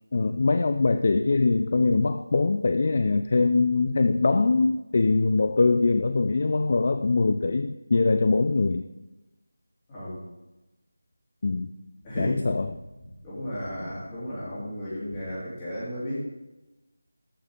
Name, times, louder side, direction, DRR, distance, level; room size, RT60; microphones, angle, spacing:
voice 1, 0.1-8.9 11.4-11.7 12.2-12.7, left 3 dB, 40° left, 9 dB, 0.4 m, -22 dB
voice 2, 12.0-12.5 13.2-16.2, equal, 15° left, -9 dB, 3.8 m, -33 dB
13.5 x 6.3 x 3.9 m, 1.0 s
figure-of-eight pair, 165°, 0 cm